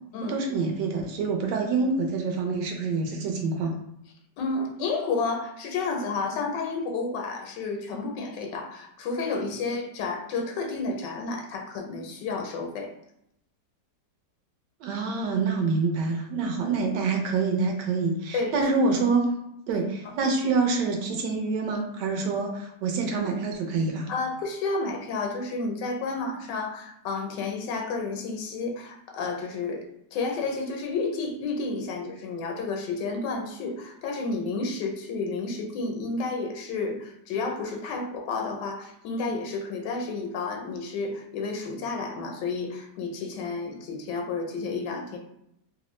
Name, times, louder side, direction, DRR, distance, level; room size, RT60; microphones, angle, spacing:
voice 1, 0.3-3.7 14.8-19.3 19.7-24.1, right 4 dB, 80° right, 3 dB, 1.2 m, -26 dB
voice 2, 4.4-12.9 18.3-18.7 20.0-20.2 24.1-45.2, left 3 dB, 90° left, 2 dB, 1.2 m, -31 dB
3.1 x 2.0 x 3.0 m, 0.78 s
omnidirectional pair, 1.8 m